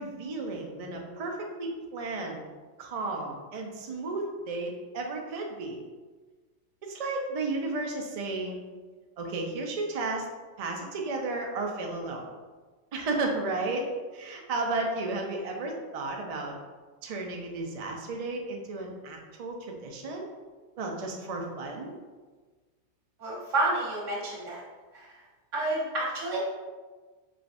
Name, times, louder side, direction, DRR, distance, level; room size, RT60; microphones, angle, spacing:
voice 1, 0.0-2.4 2.8-5.8 6.8-8.6 9.2-10.3 10.6-12.2 12.9-13.9 14.1-16.5 17.0-20.3 20.8-22.0, right 2 dB, 50° right, 1 dB, 0.4 m, -33 dB
voice 2, 23.2-24.6 24.9-25.2 25.5-26.4, right 2 dB, 80° right, -6 dB, 1.6 m, -30 dB
4.8 x 3.0 x 2.5 m, 1.3 s
omnidirectional pair, 1.3 m